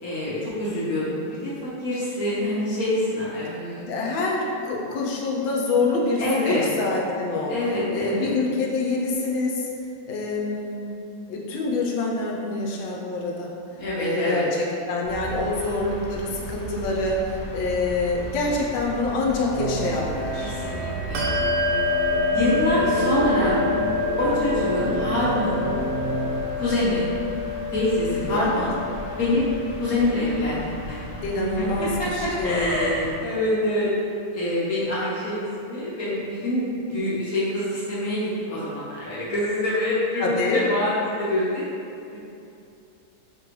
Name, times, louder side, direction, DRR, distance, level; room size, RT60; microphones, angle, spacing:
voice 1, 0.0-3.8 6.2-6.7 7.5-8.3 13.8-14.5 20.4-21.3 21.6-21.8 22.3-23.6 24.2-25.7 26.5-27.1 27.7-28.7 29.2-29.5 29.8-31.0 31.6-32.1 32.4-33.9 34.3-41.6 42.1-42.2, left 1 dB, 60° left, -8 dB, 1.0 m, -25 dB
voice 2, 3.8-7.5 7.9-9.7 10.1-10.9 11.3-13.5 14.0-14.5 14.9-20.5 28.1-28.6 31.2-33.1 40.2-40.6, left 3 dB, 80° left, -2 dB, 1.3 m, -26 dB
sound 1, 15.0-33.2, right 1 dB, 30° left, 0.7 m, -37 dB
sound 2, 19.5-26.4, right 2 dB, 45° right, 0.9 m, -29 dB
Bell, 21.1-31.1, left 4 dB, 75° right, 1.2 m, -28 dB
3.8 x 3.3 x 3.1 m, 2.7 s
omnidirectional pair, 2.1 m